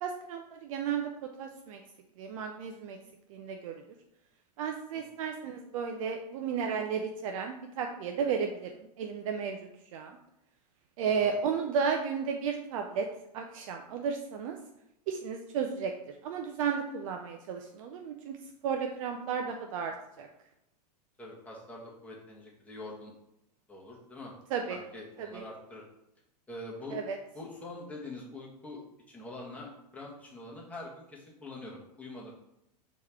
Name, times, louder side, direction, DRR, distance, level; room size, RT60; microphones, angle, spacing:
voice 1, 0.0-1.1 1.4-1.8 2.2-3.0 3.3-3.7 4.6-9.6 9.9-10.1 11.0-13.1 13.3-14.6 15.1-18.4 18.6-20.3 24.5-24.8 25.2-25.4 26.9-27.2, right 6 dB, 55° right, 4 dB, 0.5 m, -33 dB
voice 2, 21.2-23.1 23.7-24.3 24.7-25.8 26.5-27.0 27.3-28.8 29.1-32.3, left 2 dB, 5° left, -4 dB, 1.3 m, -44 dB
4.5 x 3.0 x 3.5 m, 0.84 s
hypercardioid pair, 100°, 21 cm